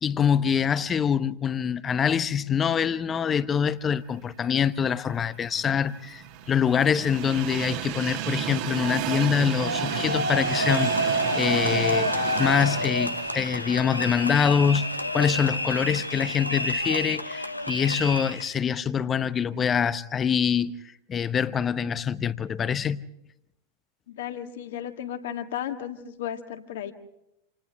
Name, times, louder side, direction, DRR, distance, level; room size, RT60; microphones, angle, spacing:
voice 1, 0.0-12.1 12.4-20.8 21.1-23.0, left 7 dB, 20° left, 0.8 m, -25 dB
Train, 5.1-15.2 15.6-15.7 16.8-16.9, right 11 dB, 45° right, 1.8 m, -33 dB
sound 1, 9.6-18.5, equal, 85° left, 0.9 m, -28 dB
voice 2, 24.1-26.9, left 10 dB, 55° left, 1.8 m, -34 dB
28.0 x 28.0 x 3.5 m
figure-of-eight pair, 90°, 0 cm